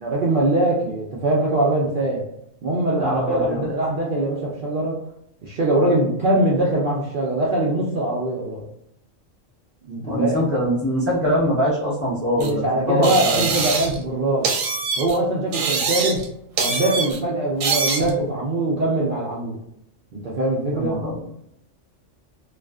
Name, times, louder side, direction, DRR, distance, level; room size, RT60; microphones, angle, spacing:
voice 1, 0.0-2.3 2.6-5.0 5.4-8.6 9.9-10.5 12.4-14.5 15.0-16.2 16.6-19.6 20.1-21.0, right 1 dB, 60° right, -5 dB, 0.6 m, -22 dB
voice 2, 3.0-3.7 10.0-13.5 20.7-21.3, equal, 15° left, -7 dB, 0.5 m, -23 dB
sound 1, 12.4-12.5 13.0-14.1 14.4-15.2 15.5-16.3 16.6-17.2 17.6-18.1, right 5 dB, 80° right, 0.9 m, -24 dB
2.4 x 2.4 x 2.3 m, 0.78 s
omnidirectional pair, 1.3 m